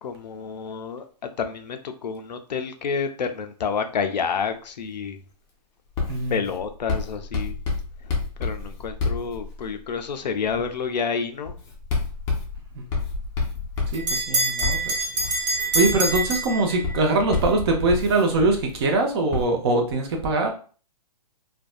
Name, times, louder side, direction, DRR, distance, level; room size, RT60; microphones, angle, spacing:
voice 1, 0.0-5.2 6.3-7.6 8.4-11.5, left 6 dB, 85° left, 7 dB, 0.5 m, -29 dB
Writing, 6.0-9.9 10.4-10.8 11.5-18.8 19.3-19.5, left 4 dB, 15° left, 0.5 m, -30 dB
voice 2, 6.1-6.4 12.7-12.9 13.9-15.0 15.4-20.5, right 2 dB, 40° right, 3 dB, 0.6 m, -23 dB
Bell, 13.1-17.2, right 2 dB, 75° right, 1.3 m, -26 dB
2.5 x 2.2 x 2.3 m, 0.40 s
hypercardioid pair, 140°, 21 cm